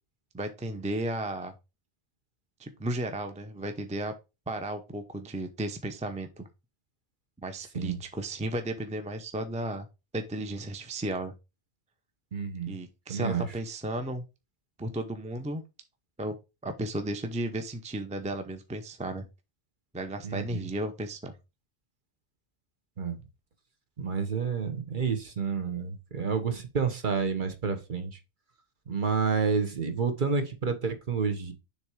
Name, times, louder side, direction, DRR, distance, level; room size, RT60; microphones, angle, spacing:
voice 1, 0.3-1.5 2.6-4.1 4.5-6.5 7.4-9.9 10.1-11.3 12.7-14.2 14.8-15.6 16.2-16.3 16.6-19.3 19.9-21.3, right 1 dB, 10° right, 0.6 m, -34 dB
voice 2, 12.3-12.8 13.1-13.5 20.2-20.7 23.0-23.2 24.0-28.2 28.9-31.5, right 5 dB, 45° right, 1.2 m, -29 dB
6.9 x 3.5 x 4.7 m
omnidirectional pair, 1.1 m